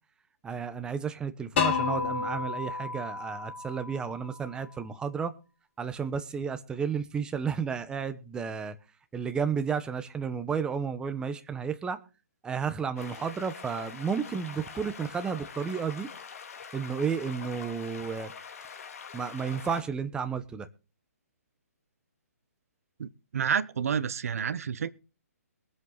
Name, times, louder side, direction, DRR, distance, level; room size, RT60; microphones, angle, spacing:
voice 1, 0.4-5.3 5.8-8.8 9.1-12.0 12.4-16.1 16.7-18.3 19.1-20.7, right 6 dB, 10° right, 1.1 m, -32 dB
sound 1, 1.6-4.5, left 5 dB, 50° left, 5.2 m, -31 dB
sound 2, 13.0-19.8, left 6 dB, 65° left, 2.7 m, -44 dB
voice 2, 23.0-24.9, right 7 dB, 65° right, 1.2 m, -29 dB
22.0 x 8.0 x 4.1 m
hypercardioid pair, 145°, 9 cm